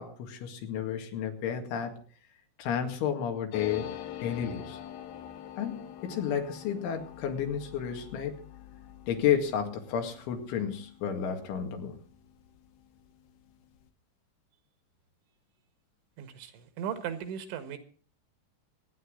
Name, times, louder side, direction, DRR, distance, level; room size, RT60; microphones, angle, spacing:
voice 1, 0.0-2.0 2.6-3.9 4.2-4.8 5.6-8.4 9.1-12.0, left 8 dB, 85° left, 5 dB, 4.5 m, -31 dB
sound 1, 3.5-12.7 13.0-13.1 13.3-13.8, left 11 dB, 70° left, 2.7 m, -45 dB
voice 2, 16.2-17.8, right 8 dB, 80° right, 9 dB, 4.0 m, -37 dB
25.5 x 10.0 x 3.8 m, 0.41 s
omnidirectional pair, 5.3 m